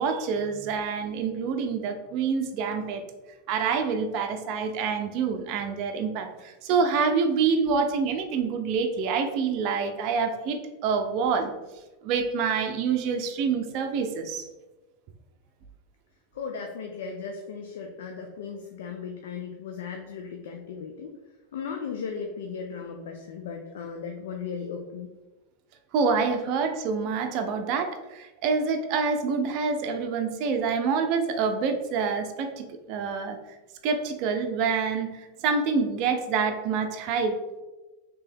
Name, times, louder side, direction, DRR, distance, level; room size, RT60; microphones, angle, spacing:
voice 1, 0.0-3.1 3.5-11.5 12.0-14.5 25.9-33.4 33.8-35.1 35.4-37.4, right 5 dB, 55° right, 5 dB, 0.5 m, -27 dB
voice 2, 16.4-21.1 21.5-25.1, left 6 dB, 75° left, 3 dB, 0.4 m, -36 dB
3.3 x 2.9 x 3.4 m, 1.1 s
hypercardioid pair, 105°, 0 cm